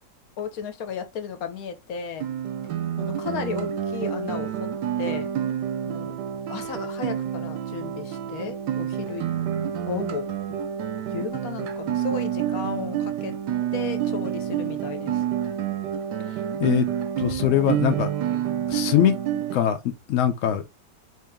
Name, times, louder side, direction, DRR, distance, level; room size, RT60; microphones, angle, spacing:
voice 1, 0.4-2.3 3.0-4.5 5.0-5.3 5.8-6.2 6.5-9.3 9.8-10.6 11.1-13.3 13.7-15.2, left 6 dB, 65° left, 1.0 m, -34 dB
Guitar, 2.2-19.6, right 10 dB, 75° right, 1.1 m, -28 dB
voice 2, 17.2-18.1 18.7-19.2 19.5-19.8 20.1-20.6, left 10 dB, 90° left, 0.6 m, -21 dB
3.6 x 2.8 x 3.5 m
omnidirectional pair, 2.0 m